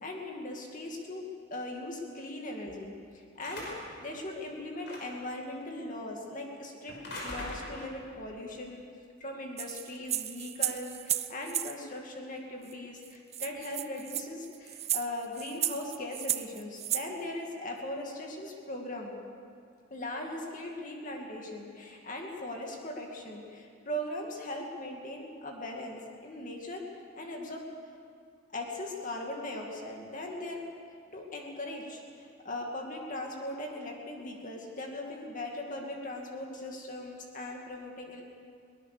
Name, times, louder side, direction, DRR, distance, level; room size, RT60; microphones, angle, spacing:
voice 1, 0.0-1.2 1.5-3.7 4.0-6.9 7.2-8.8 9.2-19.1 19.9-26.8 27.2-27.7 28.5-30.7 31.1-38.2, left 1 dB, 45° left, 0 dB, 2.3 m, -39 dB
sound 1, 3.4-4.0 4.8-5.3 6.9-8.0, left 1 dB, 60° left, 5.3 m, -41 dB
sound 2, 9.6-11.7 12.7-12.8 13.0-13.1 13.3-17.1, right 12 dB, 35° right, 0.6 m, -33 dB
22.0 x 19.5 x 6.8 m, 2.3 s
head